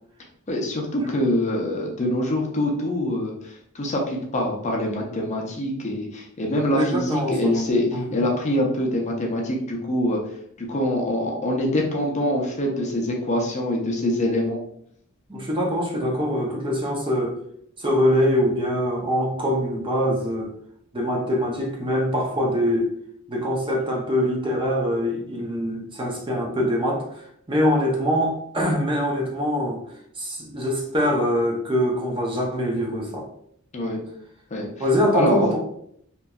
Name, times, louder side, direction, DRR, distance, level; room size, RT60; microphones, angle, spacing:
voice 1, 0.5-10.2 10.7-14.6 33.7-34.0 34.5-34.7 35.1-35.4, left 1 dB, 30° left, -1 dB, 0.6 m, -24 dB
voice 2, 6.7-8.2 15.3-17.3 17.8-20.5 20.9-22.9 23.3-29.8 30.2-33.3 34.8-35.6, equal, 25° right, -1 dB, 0.6 m, -23 dB
2.9 x 2.6 x 2.2 m, 0.69 s
head